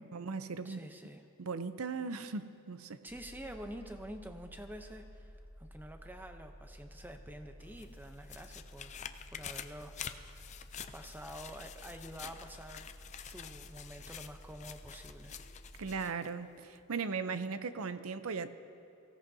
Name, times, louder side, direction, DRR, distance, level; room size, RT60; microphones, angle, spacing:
voice 1, 0.1-0.8 1.4-3.0 15.8-18.5, right 5 dB, 70° right, 11 dB, 0.6 m, -38 dB
voice 2, 0.6-1.2 3.0-8.9 9.3-10.7 10.9-12.9 13.2-15.4, equal, 10° right, 6 dB, 0.7 m, -48 dB
sound 1, 3.1-16.0, equal, 40° right, 3.5 m, -53 dB
sound 2, 7.6-16.3 16.7-16.8, left 8 dB, 30° left, 0.4 m, -48 dB
23.5 x 16.5 x 2.8 m, 2.6 s
head